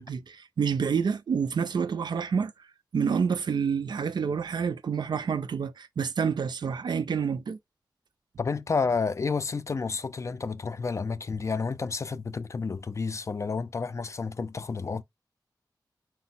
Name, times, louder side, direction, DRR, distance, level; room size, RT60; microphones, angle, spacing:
voice 1, 0.0-2.5 2.9-7.6, right 6 dB, 75° right, 0.4 m, -28 dB
voice 2, 8.4-15.0, left 4 dB, 40° left, 0.4 m, -30 dB
4.4 x 2.1 x 4.1 m
wide cardioid pair, 110°, 8 cm